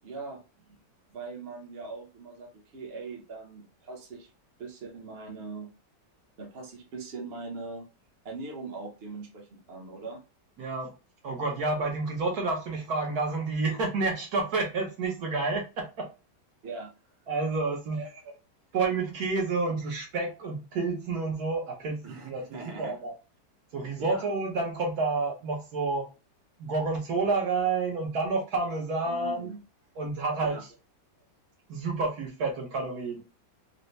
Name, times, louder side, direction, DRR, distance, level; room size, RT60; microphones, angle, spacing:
voice 1, 0.0-0.8 1.1-4.3 4.6-5.7 6.4-7.9 8.2-10.2 16.6-16.9 17.9-18.3 22.0-23.0 24.0-24.2 29.1-29.6 30.4-30.7, right 4 dB, 45° right, 0.9 m, -41 dB
voice 2, 10.6-10.9 11.2-16.1 17.3-18.0 18.7-23.1 23.7-26.1 26.6-29.5 30.0-30.7 31.7-33.2, right 3 dB, 65° right, 1.3 m, -29 dB
4.1 x 2.1 x 3.1 m
omnidirectional pair, 1.9 m